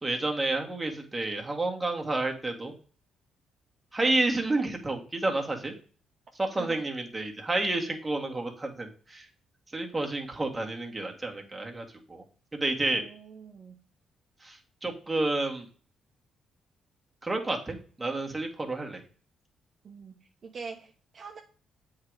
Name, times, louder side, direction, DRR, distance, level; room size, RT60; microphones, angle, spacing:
voice 1, 0.0-2.7 3.9-5.7 6.4-9.3 9.7-12.2 12.5-13.0 14.4-15.7 17.2-19.0, right 2 dB, 15° right, 1 dB, 1.7 m, -30 dB
voice 2, 12.9-13.8 19.8-20.2 20.4-21.4, right 5 dB, 45° right, 2 dB, 1.0 m, -44 dB
7.9 x 3.9 x 4.7 m, 0.41 s
cardioid pair, 90°, 0 cm